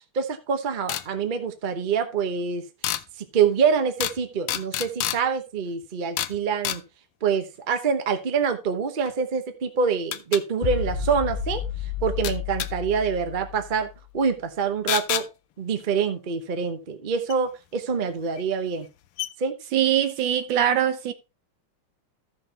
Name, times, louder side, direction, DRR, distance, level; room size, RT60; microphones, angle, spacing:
voice 1, 0.1-2.6 3.2-6.8 7.2-11.6 12.0-15.3 15.6-18.9 19.4-19.5, right 6 dB, 50° right, 0.6 m, -25 dB
sound 1, 0.9-1.1 2.8-3.0 4.0-4.2 4.5-5.2 6.2-6.4 6.6-6.8 9.1-9.2 10.1-10.4 12.2-12.7 14.9-15.3 17.3-17.4 18.4-18.5 18.8-18.9 19.2-19.3, left 13 dB, 85° left, 1.5 m, -28 dB
sound 2, 10.6-14.1, left 7 dB, 25° left, 2.9 m, -31 dB
voice 2, 19.7-21.1, right 10 dB, 70° right, 1.3 m, -22 dB
14.5 x 6.1 x 2.8 m
omnidirectional pair, 2.4 m